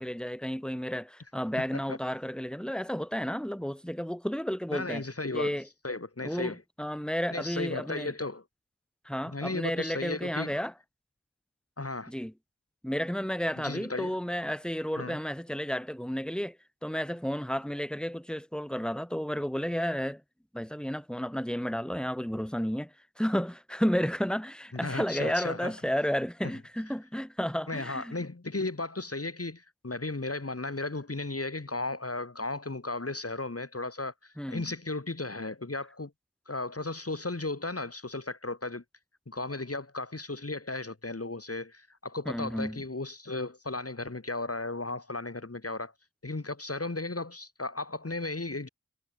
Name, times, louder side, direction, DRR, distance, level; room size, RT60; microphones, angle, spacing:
voice 1, 0.0-5.0 5.3-5.6 6.2-8.1 9.0-10.7 12.1-12.3 12.8-16.6 16.8-20.2 20.5-28.2 34.4-34.7 42.3-42.8, equal, 5° left, 4.5 m, -32 dB
voice 2, 4.7-5.6 5.8-6.6 7.3-8.4 9.3-10.6 11.8-12.1 13.6-14.2 15.0-15.2 24.7-25.7 27.7-36.1 36.5-38.8 39.3-45.9 46.2-48.7, left 2 dB, 55° left, 4.2 m, -35 dB
wide cardioid pair, 50°, 29 cm